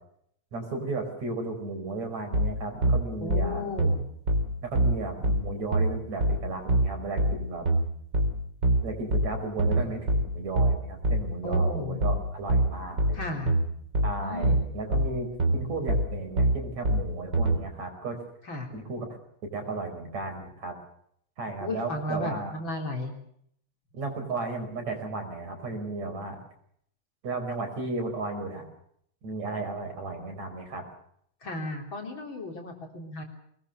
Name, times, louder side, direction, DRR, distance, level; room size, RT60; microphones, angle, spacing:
voice 1, 0.5-3.7 4.6-7.7 8.8-13.4 14.0-18.2 18.7-19.2 19.5-20.8 21.4-22.6 23.9-26.4 27.2-28.7 29.2-30.8, right 3 dB, 65° right, 4 dB, 6.3 m, -34 dB
sound 1, 2.3-17.6, right 1 dB, 35° right, 3.8 m, -25 dB
voice 2, 3.2-4.0 11.4-12.0 13.1-13.6 14.2-14.6 18.5-18.7 21.6-23.1 31.4-33.2, left 2 dB, 40° left, 2 dB, 4.3 m, -34 dB
24.5 x 20.5 x 6.6 m, 0.69 s
omnidirectional pair, 3.4 m